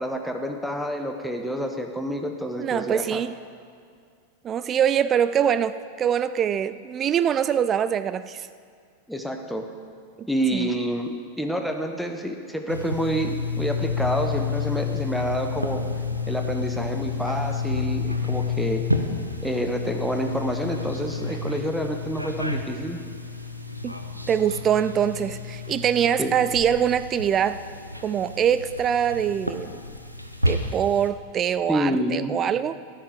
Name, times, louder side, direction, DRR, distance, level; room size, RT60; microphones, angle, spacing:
voice 1, 0.0-3.2 9.1-9.7 10.3-15.8 16.3-18.8 19.4-23.0 26.2-26.3 31.7-32.4, right 1 dB, ahead, 4 dB, 1.0 m, -28 dB
voice 2, 2.6-3.3 4.4-8.5 10.2-10.7 23.8-23.9 24.3-27.6 28.0-29.7 30.5-32.7, right 9 dB, 25° right, 14 dB, 0.3 m, -24 dB
sound 1, 12.7-31.1, left 4 dB, 90° right, 0.8 m, -30 dB
13.5 x 9.9 x 5.1 m, 2.1 s
figure-of-eight pair, 90°, 0 cm